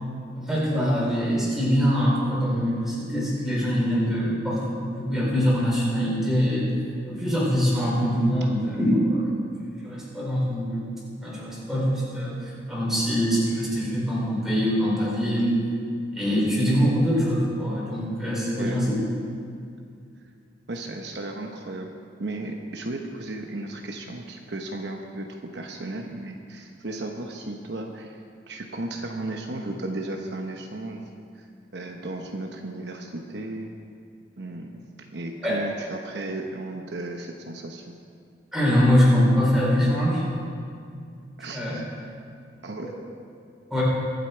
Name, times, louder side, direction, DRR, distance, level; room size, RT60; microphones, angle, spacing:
voice 1, 0.3-6.7 7.1-9.3 9.8-10.9 11.2-15.6 16.1-18.9 35.4-35.6 38.5-40.2 41.5-41.8 42.8-42.9 43.7-43.8, equal, ahead, -6 dB, 4.1 m, -23 dB
voice 2, 20.7-21.9 22.2-28.2 28.5-31.0 31.3-31.5 31.7-33.7 34.4-34.7 35.1-37.9 41.4-41.8 42.6-42.9, right 2 dB, 60° right, 2 dB, 0.9 m, -34 dB
23.0 x 8.1 x 4.5 m, 2.3 s
head